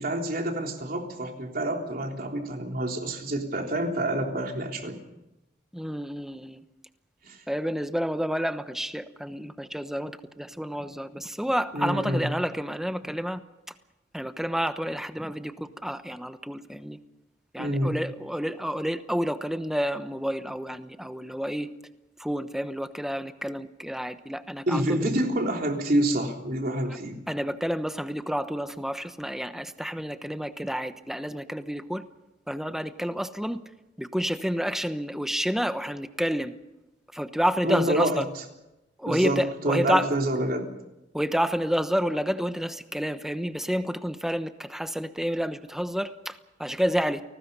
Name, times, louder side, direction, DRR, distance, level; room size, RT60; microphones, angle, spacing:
voice 1, 0.0-5.0 7.2-7.4 11.7-12.3 17.6-18.0 24.7-27.2 37.6-38.4 39.1-40.7, right 1 dB, 55° right, 2 dB, 3.5 m, -27 dB
voice 2, 5.7-6.6 7.5-13.4 14.1-17.0 17.5-21.7 22.2-25.1 26.9-27.0 27.3-32.0 32.5-33.6 34.0-36.5 37.1-38.3 39.0-40.1 41.1-47.2, equal, ahead, 10 dB, 1.0 m, -29 dB
29.0 x 19.5 x 5.6 m, 0.95 s
head